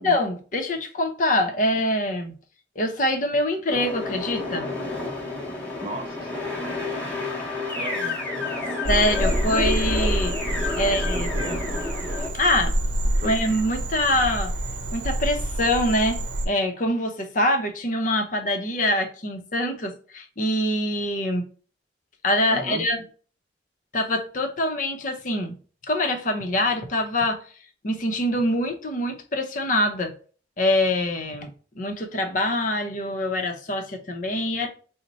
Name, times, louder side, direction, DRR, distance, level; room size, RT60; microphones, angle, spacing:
voice 1, 0.0-2.3 2.8-4.7 8.9-10.3 10.8-11.3 12.3-12.8 13.2-14.5 14.9-21.5 22.2-23.0 23.9-25.6 25.8-27.4 27.8-30.1 30.6-31.5 31.8-34.7, left 1 dB, 45° left, 5 dB, 0.7 m, -24 dB
sound 1, 3.7-12.3, left 2 dB, 10° left, 0.9 m, -30 dB
voice 2, 5.8-6.3 7.7-8.2 10.8-11.6 13.2-13.3 22.5-22.8, right 1 dB, 30° right, 4 dB, 0.6 m, -34 dB
Frog, 8.8-16.5, right 1 dB, 80° right, 0.7 m, -27 dB
4.1 x 2.1 x 3.9 m, 0.40 s
head